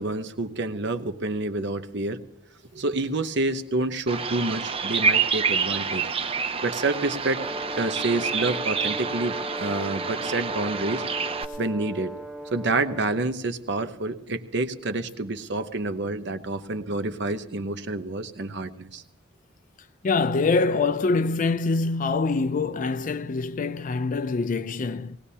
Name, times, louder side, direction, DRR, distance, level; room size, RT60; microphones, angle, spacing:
voice 1, 0.0-2.2 2.7-6.0 6.6-7.4 7.8-11.0 11.6-12.1 12.5-19.0, right 2 dB, 65° right, 0.8 m, -28 dB
Bird vocalization bird call bird song, 4.1-11.4, right 5 dB, 30° right, 0.5 m, -28 dB
Brass instrument, 7.3-13.3, equal, 5° right, 0.8 m, -37 dB
voice 2, 20.0-25.2, left 3 dB, 45° left, 0.4 m, -24 dB
19.0 x 18.5 x 2.8 m
head